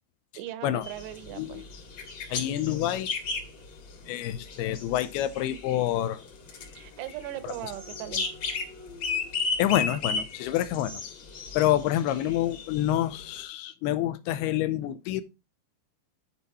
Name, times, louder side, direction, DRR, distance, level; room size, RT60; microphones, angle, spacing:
voice 1, 0.3-1.6 6.8-8.3, right 14 dB, 90° right, 2.9 m, -38 dB
sound 1, 0.8-13.4, left 4 dB, 50° left, 2.4 m, -36 dB
voice 2, 2.3-3.1 4.1-6.2 7.4-7.5 9.6-11.0 11.5-15.2, left 12 dB, 85° left, 2.6 m, -27 dB
10.5 x 4.1 x 4.1 m
omnidirectional pair, 4.7 m